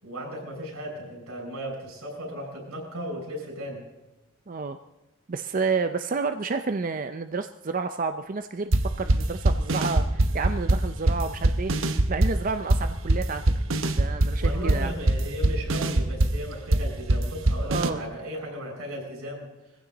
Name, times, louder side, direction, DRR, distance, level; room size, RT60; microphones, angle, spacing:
voice 1, 0.0-3.8 14.4-19.5, equal, 90° right, 0 dB, 6.4 m, -36 dB
voice 2, 4.5-4.8 5.3-13.5 13.9-14.9 17.7-18.0, right 4 dB, 40° right, 8 dB, 0.5 m, -30 dB
sound 1, 8.7-17.9, right 1 dB, 65° right, 0.9 m, -23 dB
21.5 x 15.5 x 4.0 m, 1.1 s
head